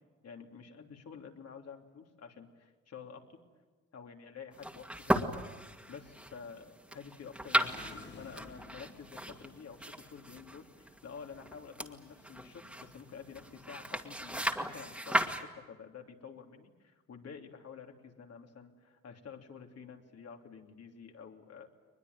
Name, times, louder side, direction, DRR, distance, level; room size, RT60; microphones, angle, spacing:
voice 1, 0.2-3.4 3.9-5.3 5.9-21.7, left 6 dB, 55° left, 3 dB, 3.1 m, -50 dB
sound 1, 4.5-15.4, right 1 dB, 5° right, 2.1 m, -36 dB
sound 2, 7.4-10.0, left 3 dB, 35° left, 2.6 m, -52 dB
22.0 x 21.5 x 9.5 m, 1.3 s
cardioid pair, 90°, 30 cm